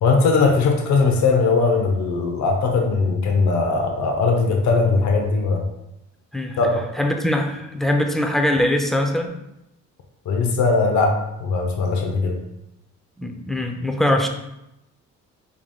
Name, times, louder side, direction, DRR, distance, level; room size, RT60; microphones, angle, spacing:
voice 1, 0.0-5.6 6.6-6.8 10.3-11.1 11.4-12.4, left 4 dB, 70° left, 3 dB, 0.7 m, -19 dB
voice 2, 7.0-9.3 13.2-14.3, left 1 dB, ahead, 4 dB, 0.5 m, -22 dB
4.7 x 3.6 x 2.2 m, 0.89 s
cardioid pair, 90°, 30 cm